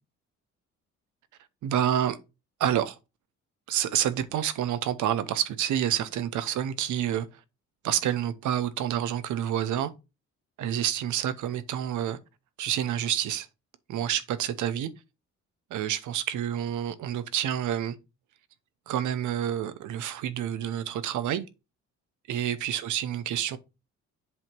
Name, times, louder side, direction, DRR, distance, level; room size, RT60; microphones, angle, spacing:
voice 1, 1.6-2.2 2.6-3.0 3.7-7.3 7.8-9.9 10.6-12.2 12.6-13.5 13.9-14.9 15.7-17.9 18.9-21.5 22.3-23.6, right 10 dB, 80° right, 0.9 m, -28 dB
7.6 x 2.9 x 5.9 m
cardioid pair, 90°, 30 cm